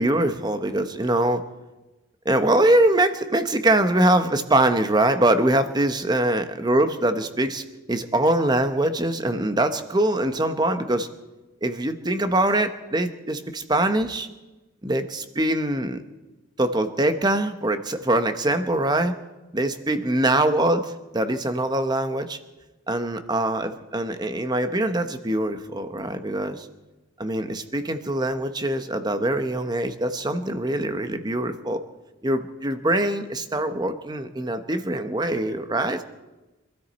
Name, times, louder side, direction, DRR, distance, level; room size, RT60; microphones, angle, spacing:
voice 1, 0.0-1.4 2.2-11.1 11.6-14.3 14.8-16.0 16.6-19.1 19.5-22.4 22.9-26.7 27.2-31.8 32.2-36.0, right 1 dB, 20° right, 9 dB, 0.9 m, -23 dB
25.5 x 13.5 x 4.1 m, 1.1 s
head